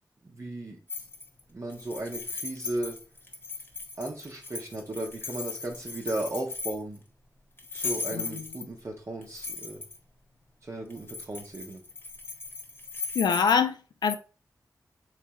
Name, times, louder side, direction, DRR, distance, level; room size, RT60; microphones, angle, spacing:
voice 1, 0.2-0.8 1.5-3.0 4.0-7.0 7.7-9.8 10.6-11.8, right 2 dB, 45° right, 0.7 m, -36 dB
sound 1, 0.9-1.4 1.7-7.0 7.6-8.8 9.2-10.0 10.9-13.6, left 4 dB, 30° left, 1.0 m, -38 dB
voice 2, 8.1-8.4 13.1-14.2, left 6 dB, 90° left, 0.4 m, -25 dB
3.5 x 3.2 x 2.9 m
cardioid pair, 60°, 7 cm